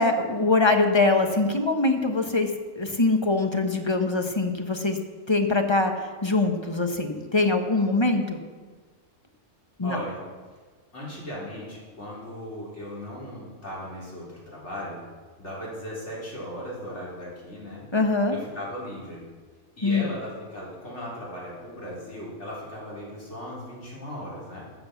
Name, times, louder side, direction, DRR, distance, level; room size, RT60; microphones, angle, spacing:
voice 1, 0.0-2.5 2.8-5.0 5.3-5.9 6.2-8.4 9.8-10.0 17.9-18.4 19.8-20.1, left 3 dB, 25° left, 5 dB, 1.0 m, -23 dB
voice 2, 9.8-10.2 10.9-15.0 15.4-17.8 18.3-19.2 19.8-24.7, equal, 60° left, -6 dB, 4.2 m, -37 dB
12.5 x 7.8 x 7.1 m, 1.5 s
omnidirectional pair, 1.3 m